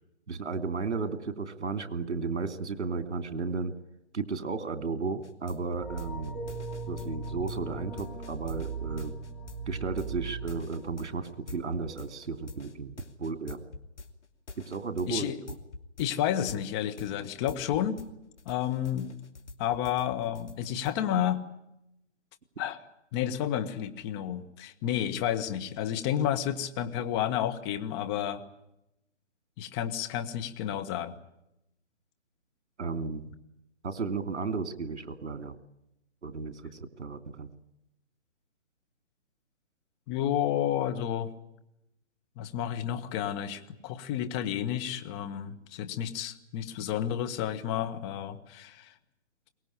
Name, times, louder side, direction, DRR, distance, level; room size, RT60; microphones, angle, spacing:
voice 1, 0.3-3.7 4.1-6.3 6.9-9.1 9.7-13.6 14.6-15.6 32.8-33.2 33.8-35.6 36.2-37.5, right 4 dB, 70° right, 10 dB, 2.8 m, -34 dB
sound 1, 5.2-18.1 18.4-21.0, left 3 dB, 75° left, 2.8 m, -46 dB
sound 2, 5.8-11.8 12.1-12.2, right 4 dB, 5° left, 4.7 m, -39 dB
voice 2, 15.1-15.4 16.0-18.0 18.4-19.2 19.6-21.4 22.6-22.8 23.1-28.4 29.6-31.1 40.1-41.3 42.4-48.9, left 10 dB, 20° left, 8 dB, 1.5 m, -31 dB
23.0 x 19.5 x 9.9 m, 0.87 s
hypercardioid pair, 150°, 36 cm